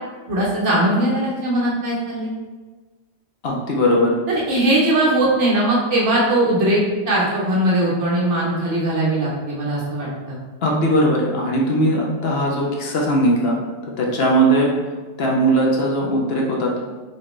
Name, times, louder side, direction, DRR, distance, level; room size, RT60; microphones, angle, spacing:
voice 1, 0.3-2.3 4.3-6.8 7.1-10.4, right 1 dB, 75° right, -5 dB, 1.4 m, -20 dB
voice 2, 3.4-4.1 10.6-13.6 14.0-14.7 15.2-16.8, right 1 dB, 60° left, -2 dB, 0.9 m, -19 dB
4.0 x 2.9 x 3.1 m, 1.3 s
omnidirectional pair, 1.2 m